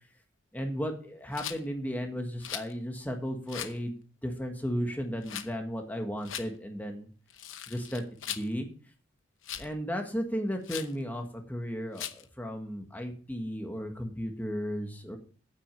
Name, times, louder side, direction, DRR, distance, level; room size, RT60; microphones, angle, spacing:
voice 1, 0.5-3.9 4.2-7.1 7.7-8.0 8.3-8.7 9.6-15.2, equal, 10° left, 4 dB, 1.5 m, -34 dB
Rattle, 1.3-1.6 2.4-2.7 3.5-3.8 5.2-5.5 6.2-6.5 7.3-8.5 9.4-9.7 10.6-10.9 12.0-12.2, left 10 dB, 80° left, 0.9 m, -39 dB
9.2 x 8.4 x 5.6 m, 0.42 s
head